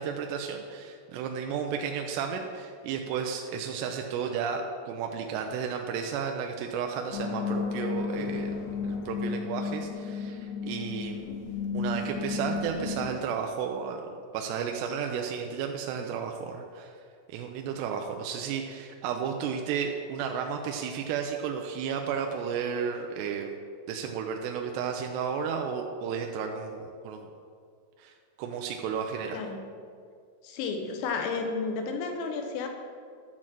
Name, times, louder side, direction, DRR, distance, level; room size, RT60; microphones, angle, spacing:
voice 1, 0.0-8.5 8.8-11.3 11.7-14.0 14.3-16.9 17.3-23.5 23.9-27.3 28.0-28.1 28.4-29.4, right 6 dB, 80° right, 3 dB, 2.7 m, -33 dB
sound 1, 7.1-13.1, left 5 dB, 70° left, 2.6 m, -33 dB
voice 2, 30.4-32.7, left 4 dB, 90° left, 4 dB, 3.3 m, -32 dB
12.0 x 4.3 x 7.4 m, 2.2 s
omnidirectional pair, 5.0 m